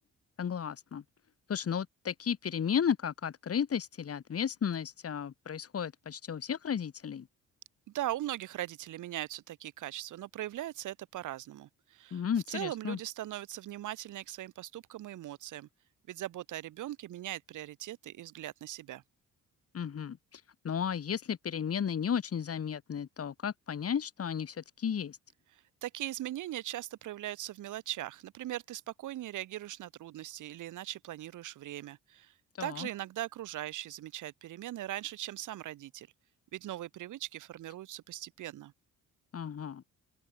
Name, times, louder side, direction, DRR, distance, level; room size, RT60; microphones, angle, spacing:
voice 1, 0.4-1.0 1.5-7.3 12.1-13.0 19.7-25.2 32.6-32.9 39.3-39.8, left 7 dB, 50° left, 5.2 m, -34 dB
voice 2, 7.9-12.2 12.5-15.7 16.1-19.0 25.5-32.3 32.6-36.1 36.5-38.7, right 14 dB, 80° right, 4.1 m, -40 dB
open air
cardioid pair, 90°, 30 cm